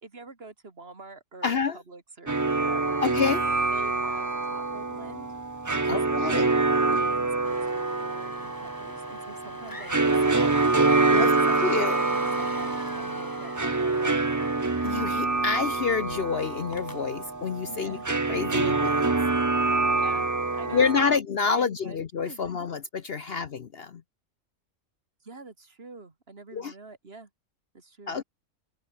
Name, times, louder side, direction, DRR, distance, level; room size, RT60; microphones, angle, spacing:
voice 1, 0.0-3.0 3.7-5.3 5.7-6.3 6.9-10.5 10.9-14.5 17.7-18.1 19.9-22.0 22.2-22.5 23.2-23.5 25.2-27.3 27.7-28.2, right 3 dB, 45° right, 2.5 m, -46 dB
voice 2, 1.4-1.8 3.0-3.4 5.9-6.5 11.1-11.3 11.6-12.0 14.8-18.0 18.3-19.1 20.7-24.0 26.5-26.7 28.1-28.2, left 5 dB, 50° left, 1.0 m, -28 dB
sound 1, 2.3-21.2, right 3 dB, 20° right, 0.5 m, -26 dB
sound 2, 7.4-15.7 16.1-16.2 16.7-17.0, left 1 dB, 15° left, 2.1 m, -42 dB
open air
omnidirectional pair, 1.5 m